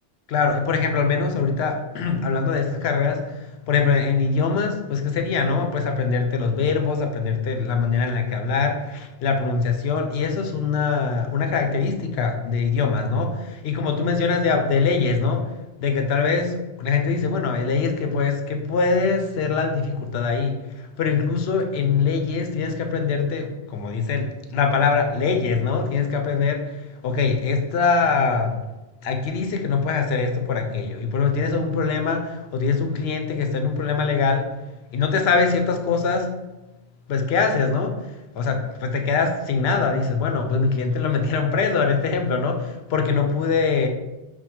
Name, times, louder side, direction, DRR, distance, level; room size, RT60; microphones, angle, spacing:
voice 1, 0.3-13.3 13.6-15.5 15.8-26.8 27.0-28.6 29.0-34.5 34.9-36.3 37.1-38.0 38.4-43.9, left 5 dB, 65° left, 4 dB, 0.8 m, -23 dB
5.8 x 2.2 x 2.9 m, 1.1 s
omnidirectional pair, 1.2 m